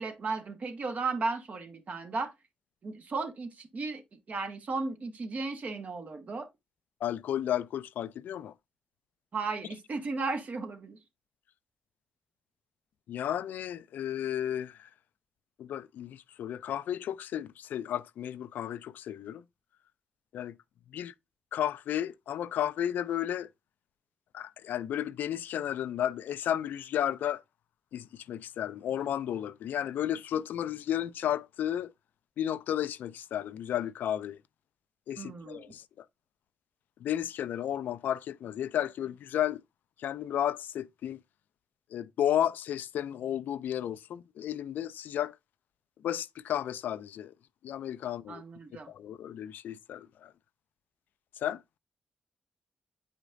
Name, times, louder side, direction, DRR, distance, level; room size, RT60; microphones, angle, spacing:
voice 1, 0.0-2.3 2.8-4.0 4.3-6.5 9.3-11.0 35.2-35.7 48.3-48.9, right 3 dB, 55° right, 1.4 m, -35 dB
voice 2, 7.0-8.5 13.1-14.9 15.6-19.4 20.3-20.6 20.9-21.1 21.5-23.5 24.3-27.4 27.9-31.9 32.4-34.4 35.1-36.0 37.0-39.6 40.0-41.2 41.9-45.3 46.0-47.3 47.6-48.4 48.9-50.3 51.4-51.6, left 10 dB, 80° left, 0.4 m, -33 dB
8.8 x 5.0 x 2.6 m
cardioid pair, 55°, 3 cm